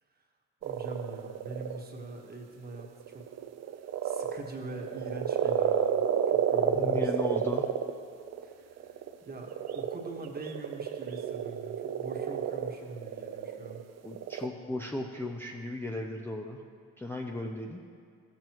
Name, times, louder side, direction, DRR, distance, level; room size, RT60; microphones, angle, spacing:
voice 1, 0.6-3.4 3.7-7.4 8.4-13.8, right 2 dB, 30° right, 1 dB, 1.3 m, -43 dB
sound 1, 0.6-1.8 2.7-14.5, right 9 dB, 60° right, 0.5 m, -30 dB
voice 2, 6.7-7.7 14.0-16.6 17.0-17.8, left 2 dB, 10° left, 0 dB, 0.5 m, -36 dB
13.5 x 7.5 x 3.0 m, 2.2 s
cardioid pair, 90°, 30 cm